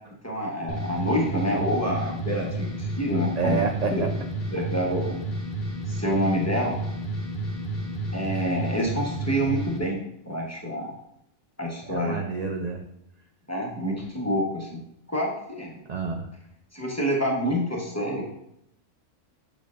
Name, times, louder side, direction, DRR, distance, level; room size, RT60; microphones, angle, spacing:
voice 1, 0.2-3.6 3.9-4.0 4.5-5.2 5.9-6.8 8.1-11.0 11.6-12.2 13.5-14.8 15.1-15.7 16.7-18.2, equal, 15° left, -2 dB, 1.0 m, -27 dB
sound 1, 0.7-9.8, right 1 dB, 50° left, 1.1 m, -31 dB
voice 2, 3.4-4.1 11.9-12.8 15.9-16.3, right 4 dB, 55° right, 2 dB, 0.4 m, -28 dB
7.1 x 6.6 x 2.4 m, 0.77 s
omnidirectional pair, 1.3 m